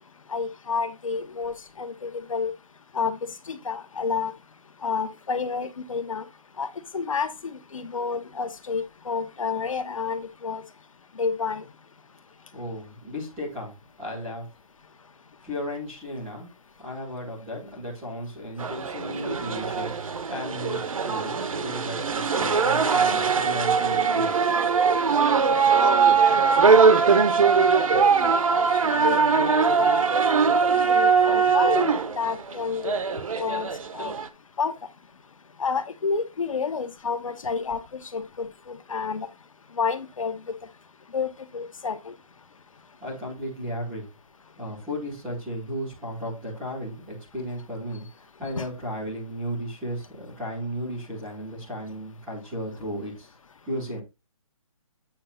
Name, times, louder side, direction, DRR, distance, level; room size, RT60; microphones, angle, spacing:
voice 1, 0.3-2.5 2.9-3.2 3.5-4.3 4.8-6.2 6.6-6.7 6.9-10.6 11.2-11.6 27.6-28.7 29.0-30.1 30.9-32.9 33.4-33.7 33.9-34.1 34.6-34.7 35.6-37.8 38.1-39.3 39.8-40.3 41.1-41.3 41.5-42.0 48.6-48.7, left 5 dB, 65° left, 1.2 m, -29 dB
voice 2, 12.5-14.5 15.4-16.5 16.8-24.4 43.0-44.1 44.6-53.3 53.7-54.0, equal, ahead, 0.4 m, -35 dB
sound 1, 18.6-34.3, right 5 dB, 65° right, 1.0 m, -21 dB
8.6 x 2.9 x 5.6 m
hypercardioid pair, 175°, 18 cm